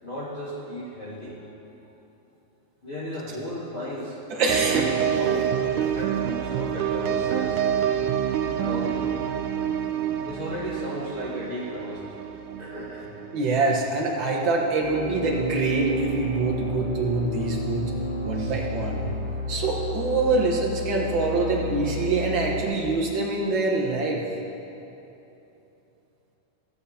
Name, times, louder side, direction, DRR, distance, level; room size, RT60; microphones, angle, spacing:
voice 1, 0.0-1.4 2.8-4.2 4.5-4.8 5.2-7.6 8.4-9.2 10.2-12.1 12.6-13.1 18.3-18.6, left 1 dB, 40° left, -7 dB, 0.9 m, -35 dB
voice 2, 4.3-5.2 13.3-17.9 18.2-19.1 19.5-24.2, right 3 dB, 55° right, -2 dB, 1.4 m, -25 dB
sound 1, 4.5-14.4 14.6-14.7, right 10 dB, 85° right, 2.1 m, -28 dB
sound 2, 14.8-22.6, left 1 dB, 65° left, 3.6 m, -31 dB
16.0 x 8.9 x 4.3 m, 2.9 s
omnidirectional pair, 3.5 m